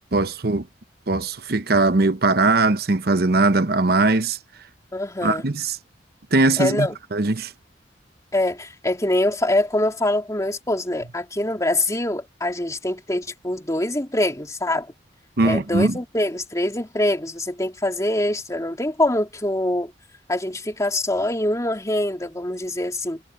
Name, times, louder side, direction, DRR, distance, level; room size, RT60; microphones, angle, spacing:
voice 1, 0.1-0.7 1.1-4.4 5.2-5.8 6.3-7.5 15.4-16.0, right 3 dB, 60° right, 1.0 m, -20 dB
voice 2, 4.9-5.4 6.6-6.9 8.3-14.9 15.4-19.9 20.3-23.2, left 1 dB, 20° left, 2.9 m, -24 dB
head